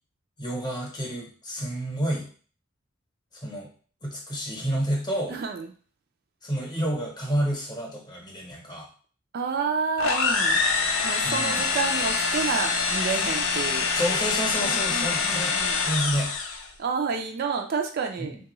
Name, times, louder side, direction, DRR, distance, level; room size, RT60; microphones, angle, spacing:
voice 1, 0.4-2.3 3.3-3.7 4.0-5.4 6.4-8.9 11.2-11.6 14.0-15.5 15.8-16.3, equal, 20° left, -1 dB, 0.8 m, -29 dB
voice 2, 5.3-5.7 9.3-10.6 11.0-13.9 14.6-15.8 16.8-18.4, right 5 dB, 50° right, 4 dB, 0.4 m, -29 dB
sound 1, 10.0-16.7, left 5 dB, 75° left, 0.5 m, -25 dB
3.4 x 2.3 x 3.0 m, 0.41 s
head